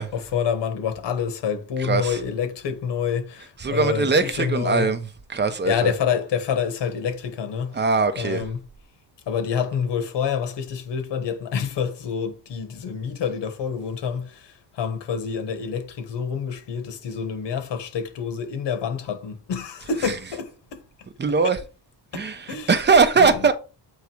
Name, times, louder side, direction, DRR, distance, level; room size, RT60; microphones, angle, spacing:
voice 1, 0.1-4.9 5.6-7.8 8.2-8.6 9.3-20.8 21.4-21.6 22.1-22.7 23.2-23.5, left 7 dB, 75° left, 1.5 m, -27 dB
voice 2, 1.8-2.2 3.6-5.0 5.3-5.9 7.7-8.4 21.2-21.6 22.1-23.5, right 4 dB, 25° right, 1.0 m, -20 dB
8.4 x 3.2 x 4.6 m
cardioid pair, 150°, 43 cm